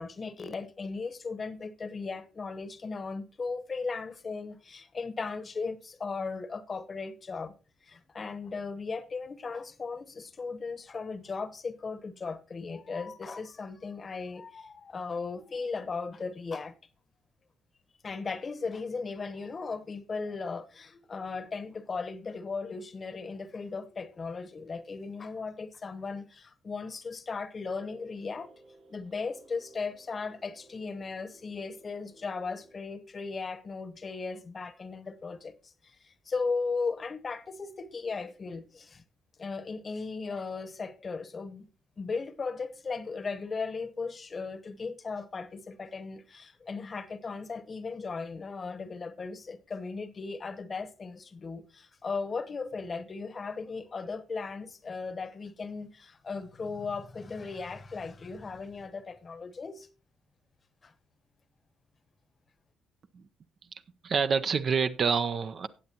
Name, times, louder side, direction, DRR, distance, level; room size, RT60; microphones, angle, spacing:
voice 1, 0.0-7.5 7.8-16.7 18.0-28.5 28.9-39.0 39.4-41.7 42.0-59.9 60.8-60.9, left 4 dB, 40° left, 1.0 m, -37 dB
sound 1, 27.8-32.8, right 2 dB, 80° right, 3.5 m, -57 dB
voice 2, 64.0-65.7, right 6 dB, 55° right, 0.6 m, -27 dB
17.5 x 7.6 x 2.8 m
supercardioid pair, 65°, 0 cm